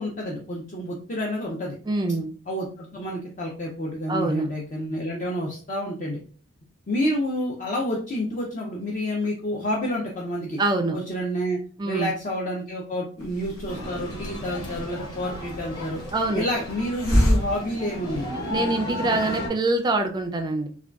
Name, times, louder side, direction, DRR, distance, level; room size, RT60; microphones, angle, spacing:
voice 1, 0.0-1.7 2.5-6.2 6.9-10.6 10.9-11.6 11.8-16.0 16.3-18.4, equal, 40° left, -2 dB, 0.5 m, -29 dB
voice 2, 1.9-2.3 4.1-4.5 10.6-11.0 11.8-12.1 16.1-16.4 18.5-20.7, right 2 dB, 20° right, 5 dB, 0.3 m, -24 dB
Hiss, 13.2-18.7, equal, 75° left, 1.0 m, -28 dB
sound 1, 13.7-19.5, left 1 dB, 20° left, 0.8 m, -34 dB
3.6 x 2.2 x 2.3 m, 0.41 s
head